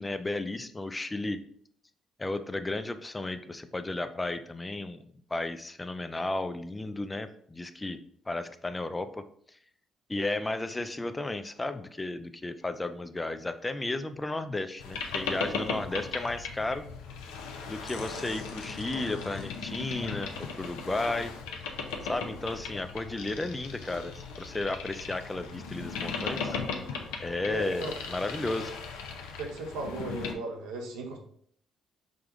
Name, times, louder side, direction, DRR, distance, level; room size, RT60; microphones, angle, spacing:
voice 1, 0.0-1.4 2.2-5.0 5.3-8.0 8.3-9.6 10.1-16.9 17.7-21.3 22.0-26.6 27.2-28.8, left 2 dB, 20° left, 10 dB, 0.4 m, -33 dB
Boat Water vehicle, 14.8-30.3, left 5 dB, 80° left, 0.6 m, -37 dB
voice 2, 27.5-27.9 29.4-31.2, right 2 dB, 80° right, 1 dB, 0.8 m, -36 dB
4.9 x 2.3 x 3.8 m, 0.63 s
hypercardioid pair, 55°, 0 cm